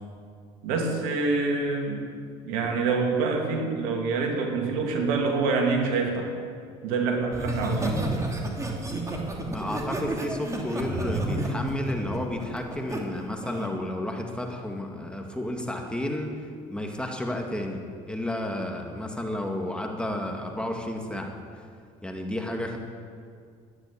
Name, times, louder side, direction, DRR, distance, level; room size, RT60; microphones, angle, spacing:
voice 1, 0.6-2.0 2.4-6.3 6.8-8.1, right 4 dB, 75° right, 2 dB, 2.6 m, -26 dB
Laughter, 7.3-13.0 13.4-13.7, right 1 dB, 20° right, 2.8 m, -31 dB
voice 2, 9.5-16.3 16.7-17.8 18.1-21.6 22.0-22.8, left 1 dB, 5° left, 2 dB, 2.3 m, -32 dB
12.5 x 10.0 x 8.6 m, 2.2 s
hypercardioid pair, 75°, 16 cm